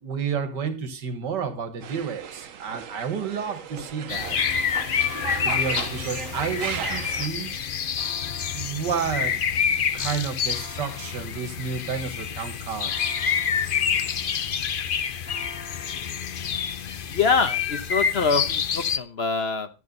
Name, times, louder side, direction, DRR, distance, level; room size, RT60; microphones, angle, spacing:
voice 1, 0.0-4.4 5.4-7.6 8.5-9.4 9.9-13.2, right 6 dB, 80° right, 10 dB, 2.0 m, -31 dB
sound 1, 1.8-7.3, right 8 dB, 55° right, 1.1 m, -36 dB
sound 2, 4.1-19.0, left 7 dB, 70° left, 0.5 m, -27 dB
voice 2, 17.1-19.7, left 5 dB, 45° left, 10 dB, 1.0 m, -24 dB
13.0 x 7.9 x 5.3 m, 0.31 s
omnidirectional pair, 1.8 m